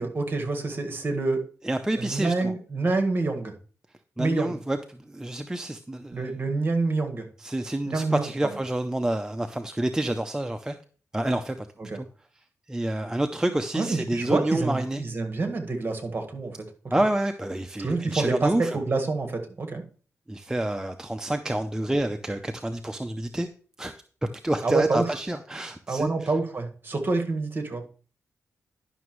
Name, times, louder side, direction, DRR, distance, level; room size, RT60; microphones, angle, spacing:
voice 1, 0.0-1.4 2.0-3.5 4.2-4.6 6.1-7.3 7.9-8.6 11.9-12.0 13.7-16.6 17.8-19.8 24.6-25.1 25.9-27.8, right 3 dB, 35° right, 4 dB, 1.7 m, -27 dB
voice 2, 1.6-2.5 4.2-6.3 7.4-10.8 11.1-11.7 11.9-12.1 12.7-15.0 16.9-18.8 20.3-23.5 23.8-23.9 24.4-26.3, right 1 dB, 10° right, 7 dB, 0.5 m, -28 dB
11.0 x 6.0 x 3.1 m, 0.41 s
cardioid pair, 85°, 6 cm